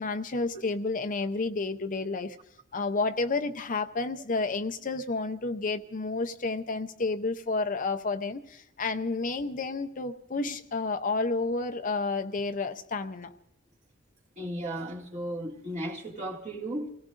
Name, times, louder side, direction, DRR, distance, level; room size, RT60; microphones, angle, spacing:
voice 1, 0.0-2.4 2.7-13.3, left 3 dB, 40° left, 0.7 m, -30 dB
voice 2, 14.4-16.9, right 1 dB, 35° right, 2.1 m, -35 dB
28.5 x 17.5 x 2.5 m
head